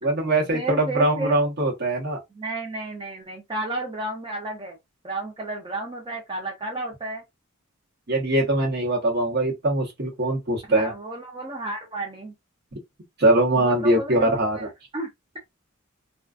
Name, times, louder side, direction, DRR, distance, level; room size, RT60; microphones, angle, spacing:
voice 1, 0.0-2.2 8.1-10.9 13.2-14.7, right 1 dB, 55° right, 1.0 m, -22 dB
voice 2, 0.5-1.3 2.3-4.8 5.0-7.2 10.7-12.3 13.6-14.7 14.9-15.1, right 2 dB, 25° right, 0.5 m, -32 dB
2.4 x 2.3 x 2.3 m
head